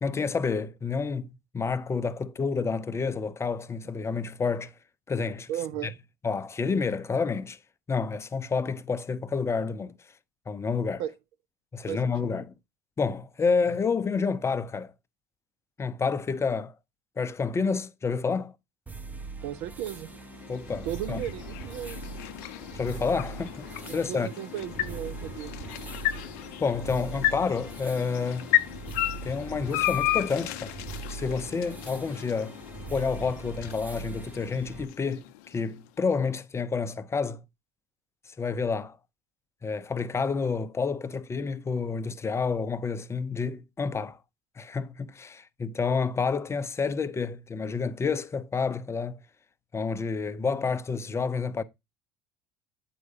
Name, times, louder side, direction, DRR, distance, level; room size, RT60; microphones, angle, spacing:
voice 1, 0.0-4.7 5.1-5.5 5.8-5.9 6.2-7.6 7.9-9.9 10.5-11.0 11.7-12.5 13.0-14.9 15.8-16.7 17.2-18.5 20.5-21.2 22.7-24.3 26.6-28.5 29.2-30.7 31.1-32.6 32.9-37.4 38.4-39.0 39.6-44.2 44.6-49.2 49.7-51.6, left 5 dB, 25° left, 0.6 m, -29 dB
voice 2, 5.5-6.0 11.0-11.1 11.9-12.4 19.4-20.1 20.8-22.0 23.8-25.6, right 11 dB, 60° right, 0.4 m, -35 dB
sound 1, 18.9-34.9, right 4 dB, 15° right, 0.8 m, -41 dB
sound 2, 19.7-35.9, left 15 dB, 65° left, 0.5 m, -34 dB
8.5 x 4.6 x 2.8 m
hypercardioid pair, 75°, 12 cm